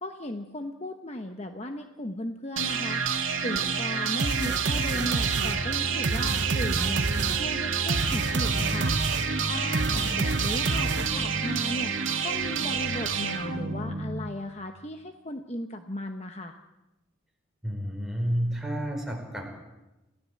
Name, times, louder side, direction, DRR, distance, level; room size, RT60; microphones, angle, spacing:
voice 1, 0.0-8.9 9.4-11.9 12.2-16.6, left 1 dB, 30° left, 5 dB, 1.0 m, -36 dB
sound 1, 2.6-14.5, right 5 dB, 85° right, 2.4 m, -28 dB
sound 2, 4.2-11.4, right 3 dB, 60° right, 0.9 m, -30 dB
voice 2, 17.6-19.4, equal, ahead, 1 dB, 4.6 m, -30 dB
28.0 x 16.0 x 7.6 m, 1.0 s
head